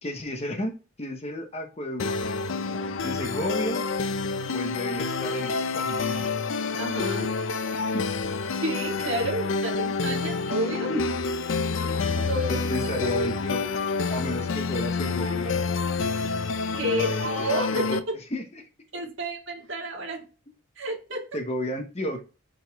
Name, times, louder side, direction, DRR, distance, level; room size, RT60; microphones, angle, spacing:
voice 1, 0.0-2.4 3.0-3.8 4.5-6.3 7.9-8.1 10.9-11.0 11.9-12.0 12.5-13.7 14.1-15.8 16.9-18.0 18.3-18.6 21.3-22.2, left 1 dB, 30° left, 0.9 m, -32 dB
sound 1, 2.0-18.0, left 4 dB, 60° left, 0.5 m, -28 dB
voice 2, 6.8-7.3 8.6-10.9 11.8-11.9 12.1-12.6 16.7-18.0 18.9-20.3 20.8-21.3, right 1 dB, 55° right, 1.8 m, -30 dB
6.9 x 4.1 x 3.5 m
head